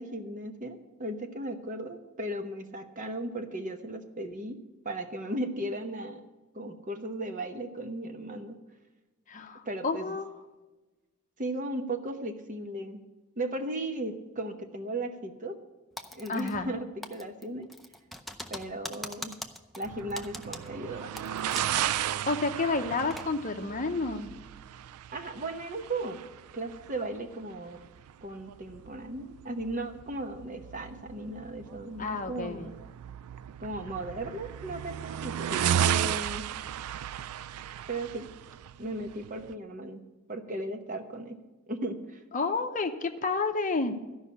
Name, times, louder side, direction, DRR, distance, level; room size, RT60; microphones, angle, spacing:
voice 1, 0.0-4.6 4.8-6.2 6.5-8.6 9.6-10.2 11.4-13.0 13.4-15.6 16.1-17.7 18.5-19.4 19.8-21.8 25.1-26.2 26.5-27.8 28.2-32.8 33.6-36.4 37.9-38.3 38.8-40.0 40.3-41.4 41.7-42.2, right 1 dB, 35° right, 6 dB, 0.9 m, -36 dB
voice 2, 9.3-10.3 16.3-16.7 22.3-24.3 32.0-32.7 42.3-44.0, left 3 dB, 35° left, 6 dB, 0.7 m, -30 dB
Typing, 16.0-16.8 17.0-21.8 22.1-22.2 22.7-23.3, left 1 dB, ahead, 0.5 m, -42 dB
sound 1, 19.8-39.5, right 10 dB, 80° right, 0.3 m, -35 dB
14.0 x 5.6 x 8.4 m, 1.2 s
head